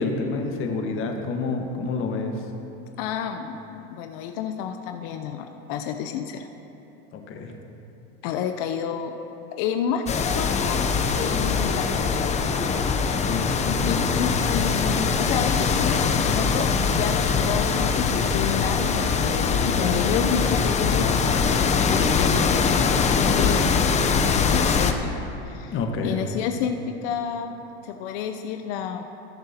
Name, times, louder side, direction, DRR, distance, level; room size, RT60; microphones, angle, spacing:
voice 1, 0.0-2.3 7.1-7.5 13.2-14.0 25.7-26.2, left 4 dB, 40° left, 3 dB, 1.5 m, -28 dB
voice 2, 3.0-6.5 8.2-9.1 9.6-10.0 10.3-10.8 11.1-12.4 13.4-21.2 21.6-25.1 25.4-27.6 27.8-29.0, left 8 dB, 60° left, 6 dB, 0.7 m, -30 dB
sound 1, 10.1-24.9, left 5 dB, 20° left, 0.7 m, -22 dB
20.0 x 7.5 x 2.9 m, 3.0 s
hypercardioid pair, 105°, 31 cm